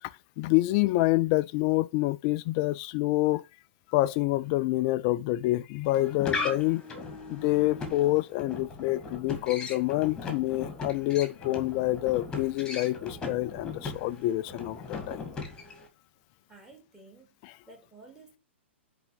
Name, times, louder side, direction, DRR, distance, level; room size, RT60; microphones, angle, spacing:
voice 1, 0.4-3.4 3.9-6.8 7.3-15.3 17.4-17.5, left 17 dB, 35° left, 0.4 m, -27 dB
sound 1, 5.8-15.9, left 3 dB, 10° left, 2.1 m, -38 dB
voice 2, 16.5-17.4 17.7-18.4, right 2 dB, 10° right, 3.0 m, -52 dB
9.8 x 3.8 x 5.5 m
figure-of-eight pair, 110°, 6 cm